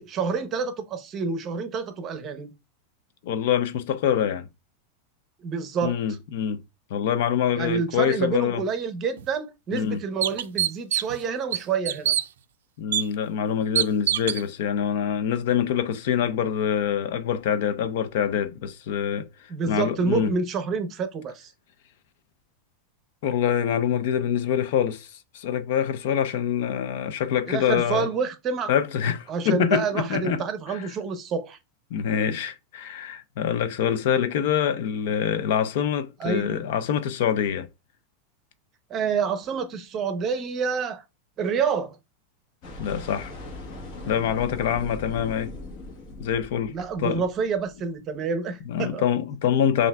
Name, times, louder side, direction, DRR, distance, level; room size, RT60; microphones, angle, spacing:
voice 1, 0.0-2.5 5.4-6.0 7.6-12.2 19.5-21.5 27.5-28.7 29.3-31.6 36.2-36.6 38.9-41.0 41.4-42.0 46.7-49.0, right 5 dB, 30° right, 0.7 m, -28 dB
voice 2, 3.2-4.5 5.8-6.6 6.9-8.6 9.7-10.0 12.8-19.3 19.7-20.3 23.2-28.1 28.7-30.9 31.9-37.7 42.8-43.3 44.1-45.5 46.2-47.2 48.7-49.9, left 9 dB, 65° left, 0.5 m, -25 dB
sound 1, 9.2-9.3 9.8-9.9 10.2-11.2 11.5-12.2 12.9-13.0 13.8-14.4, right 11 dB, 85° right, 0.3 m, -24 dB
sound 2, 42.6-47.8, left 1 dB, 50° left, 1.2 m, -40 dB
5.6 x 2.5 x 2.3 m
supercardioid pair, 135°, 0 cm